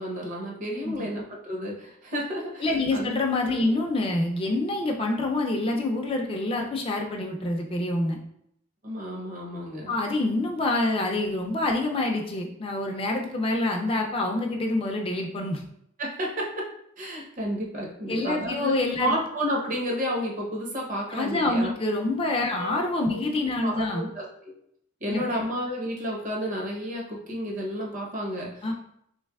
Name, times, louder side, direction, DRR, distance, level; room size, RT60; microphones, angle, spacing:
voice 1, 0.0-3.1 3.5-3.7 8.8-9.9 16.0-16.5 17.0-21.7 22.5-22.8 23.1-23.2 23.6-24.5 25.0-28.7, equal, 40° right, -2 dB, 0.8 m, -31 dB
voice 2, 2.6-8.2 9.9-15.6 18.1-19.1 21.1-24.0 25.1-25.2 28.6-28.7, left 2 dB, 25° left, 1 dB, 0.4 m, -26 dB
3.2 x 3.2 x 2.3 m, 0.72 s
head